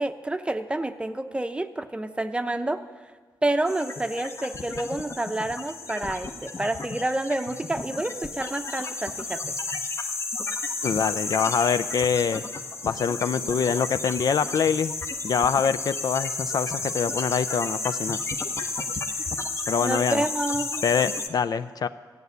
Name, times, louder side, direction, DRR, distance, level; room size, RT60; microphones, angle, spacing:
voice 1, 0.0-2.8 3.4-9.5 19.8-20.8, right 1 dB, 15° right, 9 dB, 0.7 m, -28 dB
sound 1, 3.7-21.3, left 3 dB, 40° left, 0.9 m, -32 dB
voice 2, 10.8-12.4 12.8-14.9 15.2-18.2 19.7-20.2 20.8-21.9, left 6 dB, 60° left, 12 dB, 0.5 m, -25 dB
14.0 x 6.8 x 9.4 m, 1.4 s
wide cardioid pair, 105°, 8 cm